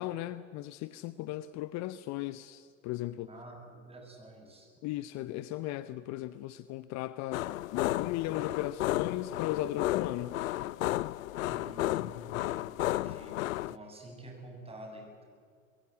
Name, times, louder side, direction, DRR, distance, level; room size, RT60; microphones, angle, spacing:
voice 1, 0.0-3.3 4.8-10.3, left 15 dB, 40° left, 15 dB, 0.8 m, -36 dB
voice 2, 3.3-4.7 11.5-13.4 13.7-15.3, equal, 15° right, 2 dB, 7.3 m, -48 dB
sound 1, 7.3-13.8, left 16 dB, 70° left, 0.6 m, -33 dB
25.0 x 22.0 x 8.3 m, 2.1 s
hypercardioid pair, 85°, 41 cm